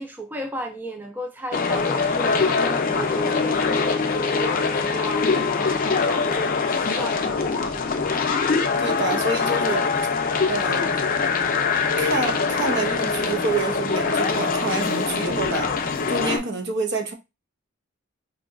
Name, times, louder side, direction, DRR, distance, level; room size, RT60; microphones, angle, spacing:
voice 1, 0.0-4.5 4.9-5.3 5.5-7.9 15.3-15.4, right 1 dB, 10° right, 0.4 m, -35 dB
sound 1, 1.5-16.4, left 4 dB, 45° left, 0.5 m, -23 dB
voice 2, 8.8-10.1 10.4-10.9 12.0-15.8 16.1-17.1, right 3 dB, 55° right, 0.7 m, -27 dB
4.5 x 2.7 x 2.5 m
head